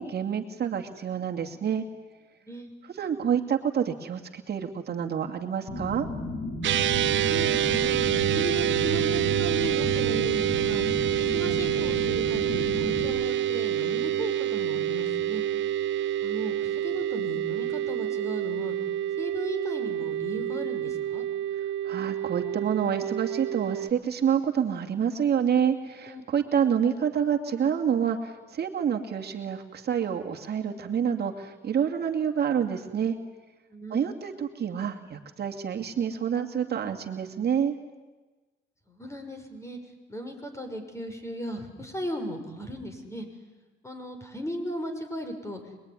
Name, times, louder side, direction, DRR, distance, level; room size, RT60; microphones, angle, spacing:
voice 1, 0.0-1.8 2.8-6.1 21.8-33.2 33.9-37.7, right 8 dB, 55° right, 3 dB, 2.4 m, -28 dB
voice 2, 2.4-2.7 7.3-8.0 8.3-10.8 11.2-15.4 16.2-18.7 19.2-21.2 26.1-26.2 33.7-34.3 38.9-39.8 40.1-43.3 43.8-45.6, equal, 15° left, 5 dB, 6.2 m, -36 dB
sound 1, 5.7-13.1, left 2 dB, 50° left, 5.7 m, -34 dB
sound 2, 6.6-23.9, right 11 dB, 70° right, 0.9 m, -27 dB
26.0 x 21.5 x 9.9 m, 1.2 s
cardioid pair, 90°, 20 cm